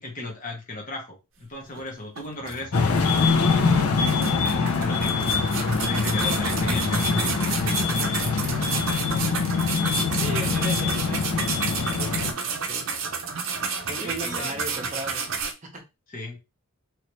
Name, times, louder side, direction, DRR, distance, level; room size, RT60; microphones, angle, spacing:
voice 1, 0.0-8.5 10.2-10.6 14.0-14.8 16.1-16.4, left 2 dB, 35° left, 0 dB, 1.0 m, -37 dB
sound 1, 1.7-1.8 2.2-3.1 3.5-3.6 4.1-15.5, right 5 dB, 60° right, 0.6 m, -31 dB
sound 2, 2.7-12.3, left 4 dB, 85° left, 0.6 m, -24 dB
voice 2, 10.1-11.4 11.9-12.9 13.9-15.2 15.6-15.8, right 1 dB, 35° right, 2 dB, 0.9 m, -36 dB
3.0 x 2.8 x 3.1 m, 0.26 s
head